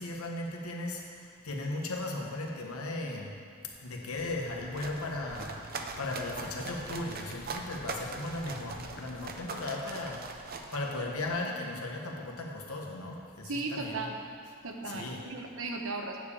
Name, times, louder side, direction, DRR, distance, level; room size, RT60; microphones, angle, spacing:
voice 1, 0.0-3.4 3.8-5.6 6.0-10.3 10.7-14.1 14.9-15.2, left 2 dB, 90° left, 1 dB, 1.3 m, -37 dB
sound 1, 4.1-9.4, left 2 dB, 55° left, 0.8 m, -50 dB
sound 2, 4.4-11.4, right 4 dB, 45° right, 0.6 m, -42 dB
voice 2, 13.4-14.2 14.6-16.2, right 3 dB, 70° right, 2 dB, 1.0 m, -36 dB
9.3 x 5.0 x 7.1 m, 2.4 s
head